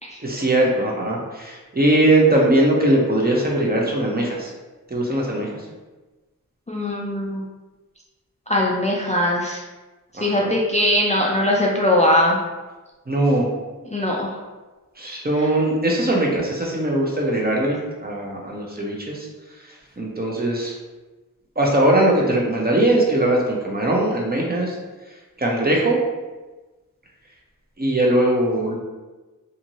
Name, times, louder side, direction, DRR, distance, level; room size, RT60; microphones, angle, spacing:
voice 1, 0.2-4.5 4.9-5.6 10.2-10.5 13.1-13.5 15.0-19.3 20.0-20.7 21.6-24.7 25.4-26.0 27.8-28.7, right 1 dB, 30° right, -2 dB, 0.6 m, -20 dB
voice 2, 6.7-7.4 8.5-9.6 10.2-12.4 13.9-14.4 15.4-15.5, left 1 dB, 20° left, -3 dB, 0.4 m, -20 dB
2.6 x 2.6 x 2.9 m, 1.2 s
wide cardioid pair, 60°, 34 cm